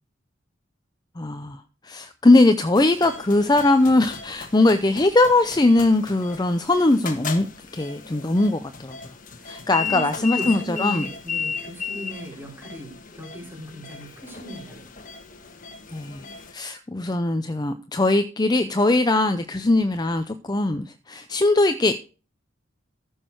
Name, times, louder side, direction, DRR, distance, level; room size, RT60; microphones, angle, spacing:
voice 1, 1.2-7.5 7.7-9.0 9.4-11.1 15.9-16.2 16.5-21.9, left 2 dB, 20° left, 9 dB, 0.5 m, -20 dB
sound 1, 2.7-16.5, left 6 dB, 40° left, 1.4 m, -35 dB
voice 2, 9.4-14.8, equal, 10° right, -1 dB, 4.1 m, -37 dB
14.5 x 6.3 x 4.6 m, 0.35 s
head